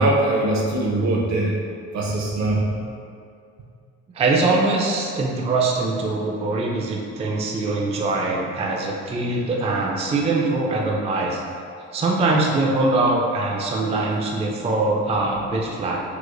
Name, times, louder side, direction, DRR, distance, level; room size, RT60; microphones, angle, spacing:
voice 1, 0.0-1.5 1.9-2.7, right 2 dB, 65° right, -1 dB, 0.7 m, -21 dB
voice 2, 4.1-11.4 11.9-16.0, right 2 dB, 20° right, -1 dB, 0.3 m, -22 dB
4.7 x 2.0 x 2.4 m, 2.4 s
cardioid pair, 90°, 30 cm